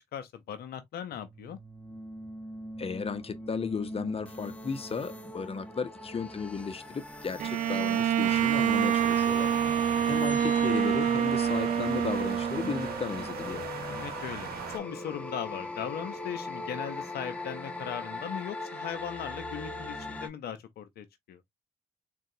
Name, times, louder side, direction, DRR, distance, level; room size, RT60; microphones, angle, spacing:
voice 1, 0.1-1.6 10.0-10.3 13.9-21.4, left 9 dB, 70° left, 0.5 m, -39 dB
sound 1, 1.1-20.3, left 1 dB, 10° left, 0.9 m, -41 dB
voice 2, 2.8-9.5 10.1-13.6, left 5 dB, 35° left, 0.7 m, -35 dB
Bowed string instrument, 7.4-13.2, right 9 dB, 50° right, 0.4 m, -27 dB
sound 2, 8.2-14.8, right 7 dB, 70° right, 0.9 m, -39 dB
3.8 x 2.3 x 2.7 m
supercardioid pair, 50°, 16 cm